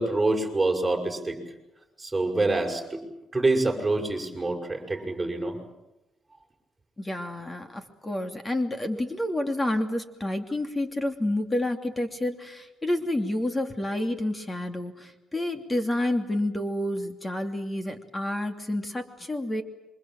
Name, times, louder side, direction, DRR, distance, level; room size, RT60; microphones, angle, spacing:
voice 1, 0.0-1.4 2.0-3.0 3.3-5.6, right 2 dB, 15° right, 2 dB, 6.6 m, -26 dB
voice 2, 7.0-19.6, left 1 dB, 20° left, 6 dB, 2.8 m, -29 dB
27.5 x 25.0 x 7.7 m, 0.93 s
cardioid pair, 90°, 0 cm